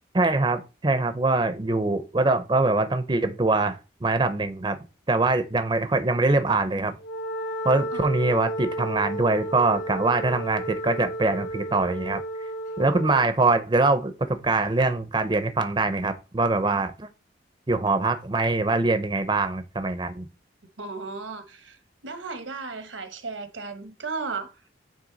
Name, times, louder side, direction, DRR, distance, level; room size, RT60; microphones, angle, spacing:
voice 1, 0.1-4.8 5.1-7.0 7.6-12.2 12.8-17.1 17.7-20.3, right 3 dB, 25° right, 0.5 m, -23 dB
Wind instrument woodwind instrument, 7.0-13.3, right 1 dB, 70° left, 1.0 m, -32 dB
voice 2, 20.8-24.7, right 4 dB, 85° right, 1.1 m, -35 dB
9.2 x 3.3 x 3.9 m
head